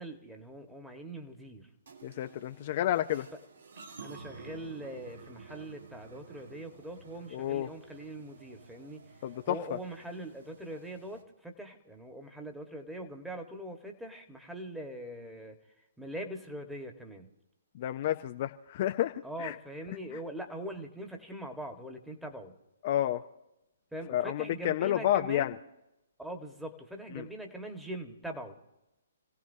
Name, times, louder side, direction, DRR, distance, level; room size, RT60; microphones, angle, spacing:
voice 1, 0.0-1.7 4.0-9.1 9.5-15.6 16.0-17.3 19.2-22.5 23.9-25.6 26.2-28.6, right 1 dB, 5° right, 2 dB, 1.6 m, -42 dB
sound 1, 1.9-11.2, right 5 dB, 70° right, 1.9 m, -52 dB
voice 2, 2.0-3.3 7.3-7.7 9.2-9.6 17.7-19.5 22.8-23.2 24.1-25.6 27.1-27.3, left 12 dB, 45° left, 8 dB, 0.6 m, -30 dB
29.0 x 16.5 x 2.8 m, 0.92 s
figure-of-eight pair, 130°, 0 cm